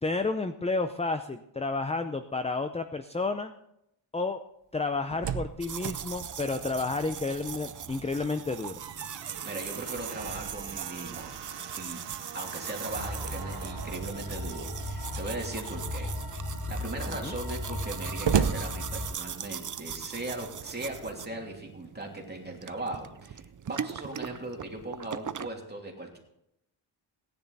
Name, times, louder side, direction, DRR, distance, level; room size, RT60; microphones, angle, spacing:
voice 1, 0.0-3.5 4.1-4.4 4.7-8.7 17.2-17.3, left 3 dB, 15° left, 8 dB, 0.5 m, -31 dB
Slam, 4.8-7.6 8.0-8.1 8.5-14.1 15.0-15.6 16.1-16.2 16.4-19.6, right 7 dB, 60° right, 1.0 m, -36 dB
sound 1, 5.6-25.5, right 8 dB, 40° right, 0.5 m, -40 dB
voice 2, 9.4-11.3 11.8-12.0 12.3-16.1 16.7-26.2, right 2 dB, 20° right, 0 dB, 2.8 m, -39 dB
sound 2, 12.9-19.1, left 1 dB, 50° left, 3.4 m, -37 dB
17.5 x 10.5 x 4.1 m, 0.79 s
wide cardioid pair, 155°, 48 cm